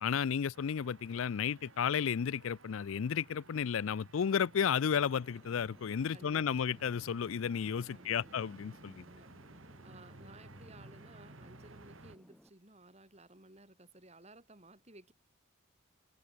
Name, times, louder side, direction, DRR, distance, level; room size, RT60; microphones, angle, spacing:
voice 1, 0.0-9.0, left 7 dB, 75° left, 0.4 m, -33 dB
sound 1, 0.5-12.2, right 2 dB, 75° right, 2.7 m, -56 dB
sound 2, 4.5-12.5, equal, ahead, 6.0 m, -62 dB
voice 2, 6.1-6.6 7.8-8.4 9.0-9.3 9.8-15.1, right 2 dB, 30° right, 4.1 m, -57 dB
head